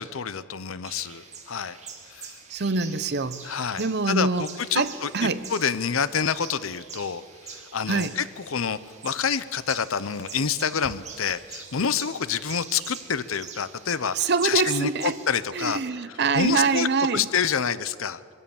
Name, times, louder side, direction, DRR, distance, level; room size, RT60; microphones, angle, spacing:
voice 1, 0.0-1.8 2.1-2.4 3.4-5.1 5.5-15.8 16.1-18.2, left 6 dB, 85° left, 15 dB, 0.8 m, -28 dB
sound 1, 0.8-15.4, right 6 dB, 35° right, 2.3 m, -45 dB
voice 2, 2.5-4.5 4.7-5.5 7.9-8.2 14.1-15.1 15.5-17.3, right 4 dB, 55° right, 12 dB, 0.8 m, -25 dB
22.5 x 16.5 x 7.2 m, 2.1 s
head